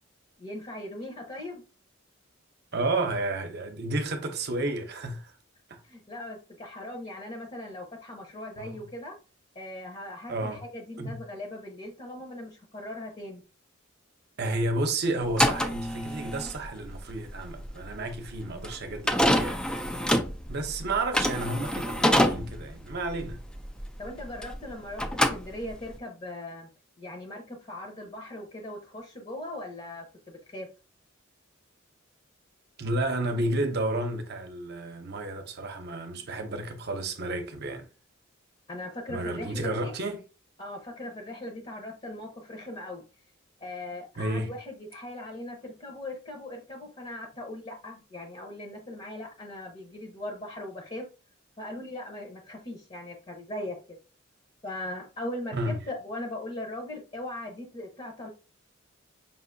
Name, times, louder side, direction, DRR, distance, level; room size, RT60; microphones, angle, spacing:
voice 1, 0.4-1.6 5.8-9.2 9.5-13.4 24.0-26.7 27.0-30.7 38.7-39.9 40.6-43.1 43.6-51.1 51.6-54.0 54.6-58.3, left 1 dB, 30° left, 0.8 m, -39 dB
voice 2, 2.7-5.4 5.7-5.8 8.6-8.8 10.3-10.6 11.0-11.2 14.4-20.0 20.5-23.4 32.8-37.9 39.1-40.2 44.2-44.5 55.5-55.8, right 2 dB, 55° right, 0.8 m, -31 dB
sound 1, 15.2-24.7 25.0-26.0, equal, 5° left, 0.3 m, -27 dB
5.4 x 2.7 x 2.6 m
head